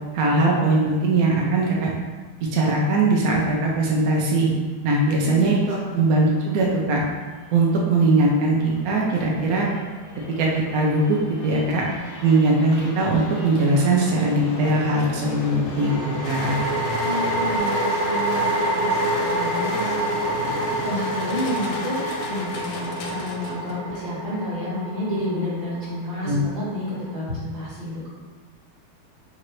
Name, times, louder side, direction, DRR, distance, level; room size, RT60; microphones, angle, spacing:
voice 1, 0.1-1.9 2.4-4.5 4.8-7.0 7.5-9.7 10.3-11.2 11.4-11.9 12.2-16.6 26.2-26.4, right 2 dB, 70° right, -2 dB, 0.8 m, -20 dB
sound 1, 5.3-17.6, left 2 dB, 65° left, 1.2 m, -38 dB
sound 2, 12.8-12.9 15.8-27.1, right 1 dB, 25° left, 0.4 m, -27 dB
sound 3, 16.2-23.9, left 2 dB, 85° left, 0.8 m, -34 dB
voice 2, 17.0-21.9 22.3-28.1, left 1 dB, 50° right, -7 dB, 2.0 m, -30 dB
4.4 x 3.8 x 3.1 m, 1.4 s
omnidirectional pair, 2.2 m